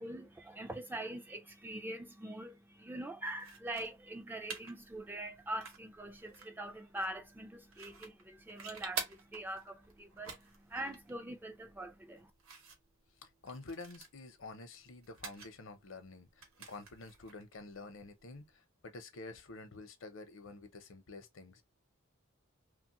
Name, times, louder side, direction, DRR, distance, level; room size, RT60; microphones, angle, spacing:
voice 1, 0.0-12.3, right 1 dB, 10° right, 0.3 m, -43 dB
sound 1, 3.4-18.5, right 5 dB, 80° right, 0.9 m, -50 dB
voice 2, 13.2-21.6, left 3 dB, 65° left, 0.7 m, -49 dB
2.9 x 2.2 x 2.9 m
head